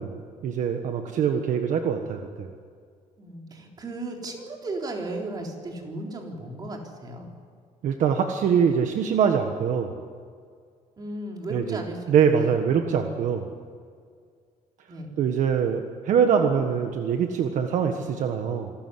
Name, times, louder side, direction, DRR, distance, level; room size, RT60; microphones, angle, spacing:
voice 1, 0.0-2.5 7.8-9.9 11.5-11.8 12.1-13.5 15.2-18.7, right 7 dB, 60° right, 5 dB, 1.5 m, -24 dB
voice 2, 3.2-7.3 11.0-12.0 12.2-13.1 14.9-15.1, right 2 dB, 30° right, 1 dB, 3.7 m, -35 dB
26.5 x 13.5 x 9.8 m, 2.1 s
cardioid pair, 170°, 14 cm